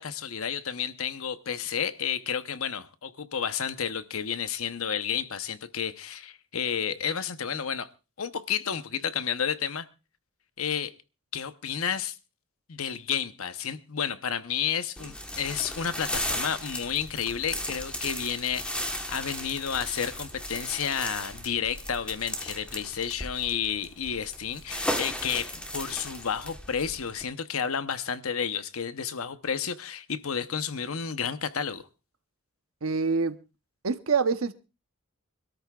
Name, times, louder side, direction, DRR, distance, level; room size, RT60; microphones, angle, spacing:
voice 1, 0.0-7.9 8.2-9.9 10.6-10.9 11.3-12.1 12.7-31.9, left 7 dB, 80° left, 0.9 m, -31 dB
sound 1, 15.0-27.2, left 1 dB, 5° left, 1.2 m, -36 dB
voice 2, 32.8-33.3 33.8-34.5, right 5 dB, 80° right, 1.0 m, -25 dB
25.5 x 13.0 x 2.4 m
head